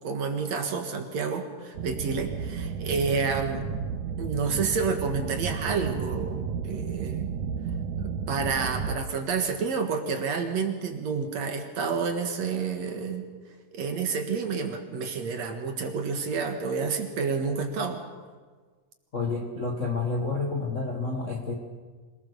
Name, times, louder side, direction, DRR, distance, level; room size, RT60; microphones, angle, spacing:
voice 1, 0.0-3.7 4.2-7.3 8.0-13.2 13.7-18.0, right 5 dB, 55° right, 5 dB, 2.6 m, -29 dB
sound 1, 1.7-9.0, right 7 dB, 70° right, 2.2 m, -32 dB
voice 2, 19.1-21.5, left 3 dB, 35° left, 1 dB, 1.2 m, -29 dB
25.5 x 19.0 x 6.9 m, 1.5 s
omnidirectional pair, 3.9 m